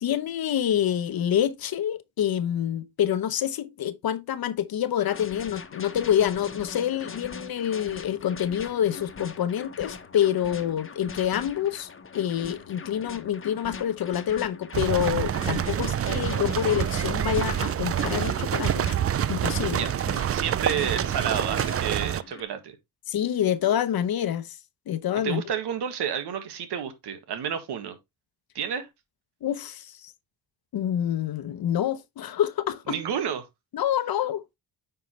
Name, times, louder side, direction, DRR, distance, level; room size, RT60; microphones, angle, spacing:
voice 1, 0.0-11.9 12.1-18.9 19.3-19.8 23.1-24.6 24.9-25.4 29.4-30.1 30.7-33.0 33.7-34.4, left 10 dB, 65° left, 0.9 m, -27 dB
sound 1, 5.0-22.4, left 5 dB, 30° left, 1.2 m, -41 dB
sound 2, 14.7-22.2, right 10 dB, 35° right, 0.4 m, -27 dB
voice 2, 20.3-22.8 25.2-28.0 28.6-28.9 32.9-33.5, right 8 dB, 85° right, 1.9 m, -30 dB
9.4 x 5.6 x 3.2 m
cardioid pair, 110°, 39 cm